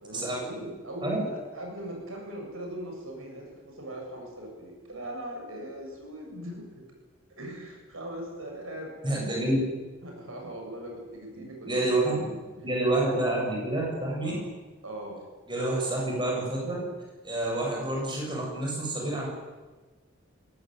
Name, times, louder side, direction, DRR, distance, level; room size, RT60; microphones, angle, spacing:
voice 1, 0.0-6.9 7.4-8.9 10.0-13.2 14.2-14.5 14.8-15.2 17.4-17.6, right 1 dB, 85° right, 1 dB, 7.9 m, -40 dB
voice 2, 9.0-9.6 11.4-12.2 12.6-14.3 15.5-16.8 17.2-19.3, right 2 dB, 20° right, -2 dB, 7.4 m, -28 dB
21.5 x 19.0 x 9.3 m, 1.3 s
head